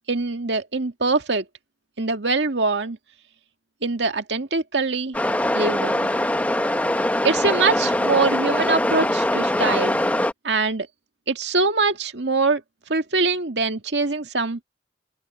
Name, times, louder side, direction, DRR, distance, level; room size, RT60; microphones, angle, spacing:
voice 1, 0.1-1.5 2.0-3.0 3.8-5.2 5.5-6.1 7.2-10.0 10.4-10.9 11.3-12.6 12.9-14.6, right 3 dB, 80° right, 2.0 m, -23 dB
sound 1, 5.1-10.3, left 1 dB, 10° left, 0.8 m, -22 dB
open air
head